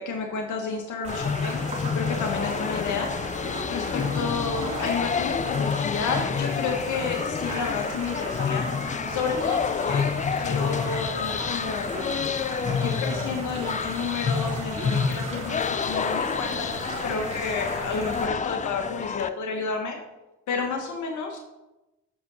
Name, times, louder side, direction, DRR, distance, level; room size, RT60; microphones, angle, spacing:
voice 1, 0.0-1.6 1.9-3.1 3.7-8.7 9.1-10.1 10.4-11.9 12.8-20.0 20.5-21.4, left 5 dB, 75° left, 3 dB, 1.4 m, -31 dB
sound 1, 1.0-18.3, right 2 dB, 20° right, 3.5 m, -36 dB
sound 2, 1.1-19.3, left 6 dB, 25° left, 0.4 m, -29 dB
8.6 x 6.7 x 6.2 m, 1.0 s
cardioid pair, 90°, 30 cm